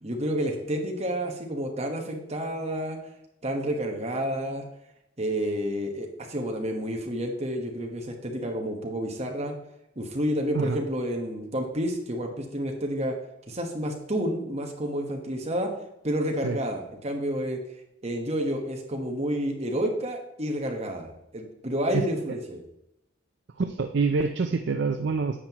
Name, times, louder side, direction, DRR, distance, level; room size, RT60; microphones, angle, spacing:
voice 1, 0.0-3.0 3.4-4.7 5.2-9.5 10.0-13.2 13.5-15.7 16.0-17.6 18.0-22.6, equal, 30° right, 2 dB, 1.3 m, -30 dB
voice 2, 23.6-25.4, right 4 dB, 60° right, 7 dB, 0.5 m, -26 dB
9.8 x 7.5 x 3.0 m, 0.84 s
head